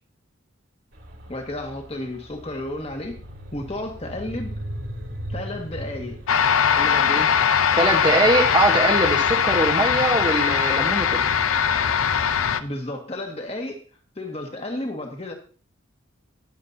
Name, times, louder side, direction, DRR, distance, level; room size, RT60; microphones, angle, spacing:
sound 1, 0.9-12.5, equal, 60° right, 2.6 m, -39 dB
voice 1, 1.3-3.2 3.5-4.6 5.3-6.2 6.7-7.4 12.6-13.8 14.2-15.3, left 1 dB, 30° left, 3 dB, 1.9 m, -32 dB
sound 2, 6.3-12.6, left 7 dB, 85° left, 0.6 m, -20 dB
voice 2, 7.8-11.2, right 2 dB, 20° right, 3 dB, 1.2 m, -22 dB
20.5 x 7.5 x 2.8 m, 0.39 s
head